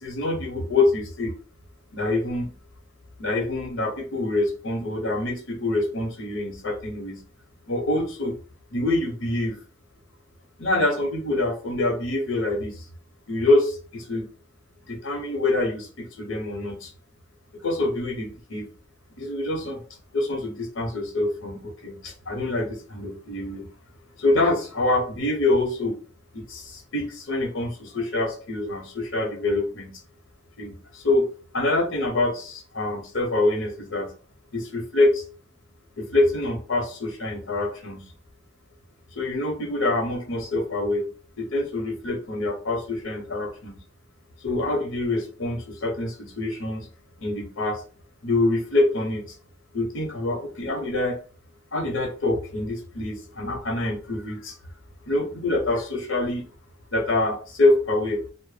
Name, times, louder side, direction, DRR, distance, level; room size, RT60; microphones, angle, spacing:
voice 1, 0.0-1.3 1.9-2.5 3.2-7.2 7.7-8.4 8.7-9.6 10.6-12.8 13.3-14.3 14.9-16.9 17.5-18.7 19.2-19.8 20.1-23.7 24.2-26.0 26.3-29.9 30.6-31.3 31.5-34.1 34.5-35.2 36.0-38.0 39.1-41.0 41.4-43.8 44.4-46.9 47.2-47.8 48.2-49.3 49.7-51.2 51.7-54.6 55.1-56.4 56.9-58.2, left 2 dB, 85° left, 2 dB, 0.8 m, -25 dB
2.1 x 2.0 x 3.1 m, 0.39 s
head